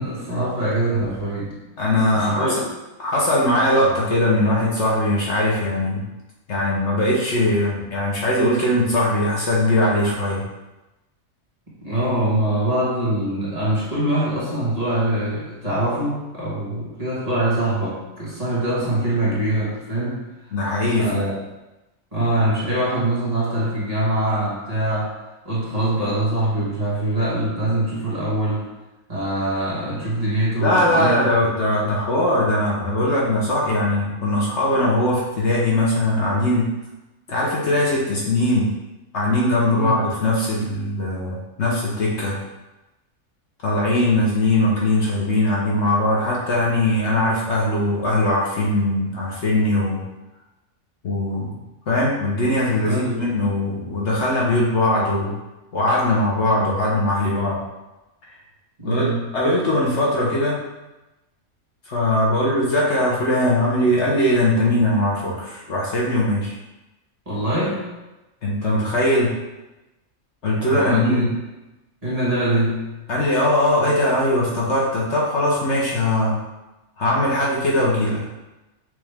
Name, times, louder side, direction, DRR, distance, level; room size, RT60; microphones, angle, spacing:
voice 1, 0.0-1.5 2.1-2.7 11.8-20.2 20.9-21.4 22.1-25.1 25.4-28.6 29.1-31.3 39.7-40.0 52.8-53.4 58.8-59.3 67.3-67.8 70.5-71.3 72.0-73.0, right 1 dB, 30° right, -9 dB, 1.4 m, -23 dB
voice 2, 1.8-2.5 3.0-6.0 6.5-10.4 20.5-21.4 30.6-36.7 37.3-38.7 39.1-42.4 43.6-50.0 51.0-51.6 51.9-55.3 55.7-57.6 58.8-60.6 61.9-66.6 68.4-69.3 70.4-71.3 73.1-76.4 77.0-78.2, left 1 dB, 60° left, -4 dB, 1.1 m, -20 dB
6.2 x 2.5 x 3.4 m, 1.0 s
omnidirectional pair, 1.4 m